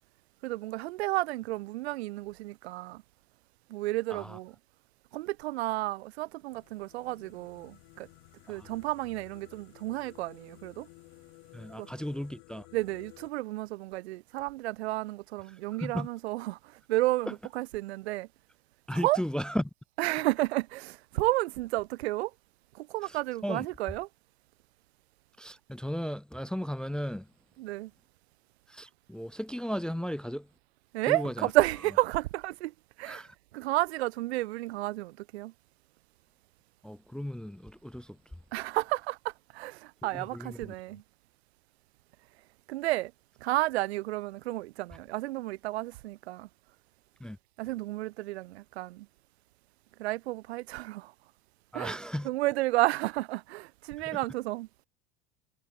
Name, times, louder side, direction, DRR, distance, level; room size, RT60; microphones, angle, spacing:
voice 1, 0.4-3.0 3.7-4.6 5.1-8.1 8.5-10.9 11.8-11.9 12.7-18.3 18.9-19.2 20.0-22.3 22.7-24.1 27.6-27.9 30.9-33.2 33.5-35.5 38.5-41.0 42.7-43.1 43.4-46.5 47.6-49.1 50.0-51.1 51.7-52.0 52.2-54.7, right 18 dB, 65° right, 0.7 m, -32 dB
sound 1, 6.5-13.3, left 36 dB, 55° left, 2.4 m, -55 dB
voice 2, 11.5-12.7 15.8-16.1 17.3-17.4 18.9-19.6 23.1-23.2 23.4-23.7 25.4-27.3 28.7-30.5 31.1-31.5 33.0-33.3 36.8-38.2 40.1-40.7 47.2-47.4 51.7-52.3, equal, ahead, 0.5 m, -35 dB
figure-of-eight pair, 80°, 35 cm